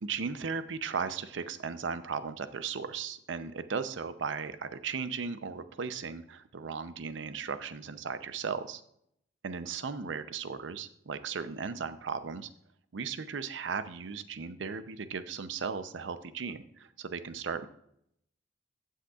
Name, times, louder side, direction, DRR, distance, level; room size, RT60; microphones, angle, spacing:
voice 1, 0.0-8.8 9.4-12.5 12.9-17.7, right 5 dB, 70° right, 12 dB, 0.6 m, -36 dB
15.0 x 6.4 x 2.4 m, 0.73 s
head